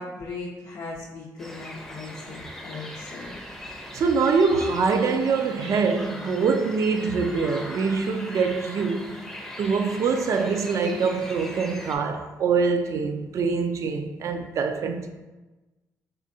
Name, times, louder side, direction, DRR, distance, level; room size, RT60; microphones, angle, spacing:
voice 1, 0.0-3.5, left 3 dB, 60° left, 0.5 m, -38 dB
sound 1, 1.4-12.0, left 1 dB, 5° left, 0.5 m, -40 dB
voice 2, 3.9-9.2 9.6-15.1, right 5 dB, 50° right, 0.4 m, -24 dB
4.2 x 3.5 x 2.6 m
cardioid pair, 150°, 7 cm